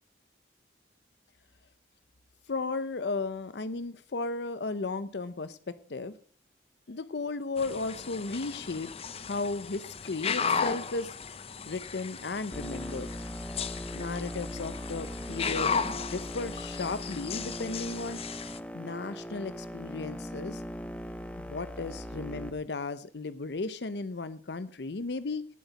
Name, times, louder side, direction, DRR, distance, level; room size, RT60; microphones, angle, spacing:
voice 1, 2.5-6.2 6.9-8.9 9.2-11.2 11.6-13.1 13.9-18.2 18.7-20.6 21.4-25.5, left 3 dB, 70° left, 14 dB, 0.7 m, -35 dB
sound 1, 7.6-18.6, left 6 dB, 35° left, 0.8 m, -35 dB
sound 2, 12.5-22.5, equal, 5° left, 1.1 m, -40 dB
18.5 x 8.0 x 4.0 m, 0.42 s
head